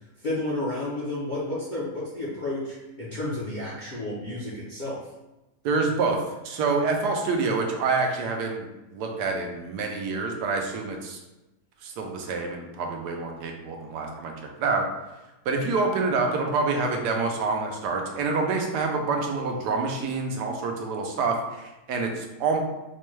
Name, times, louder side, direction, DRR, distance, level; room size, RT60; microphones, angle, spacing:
voice 1, 0.0-5.0, left 1 dB, 50° left, -8 dB, 0.6 m, -31 dB
voice 2, 5.6-8.7 8.9-11.2 11.8-14.9 15.5-22.6, right 4 dB, 80° right, 2 dB, 1.2 m, -27 dB
4.2 x 2.2 x 3.1 m, 1.0 s
omnidirectional pair, 1.8 m